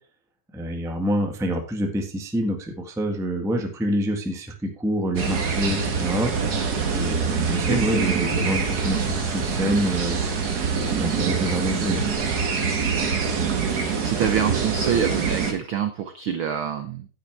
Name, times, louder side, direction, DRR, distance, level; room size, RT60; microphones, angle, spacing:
voice 1, 0.5-6.3 6.9-10.2 10.8-12.0, equal, 5° right, 3 dB, 0.6 m, -27 dB
sound 1, 5.2-15.5, right 5 dB, 40° right, 1.6 m, -25 dB
voice 2, 13.5-17.1, right 8 dB, 75° right, 8 dB, 1.2 m, -26 dB
9.9 x 9.3 x 3.4 m, 0.37 s
omnidirectional pair, 3.4 m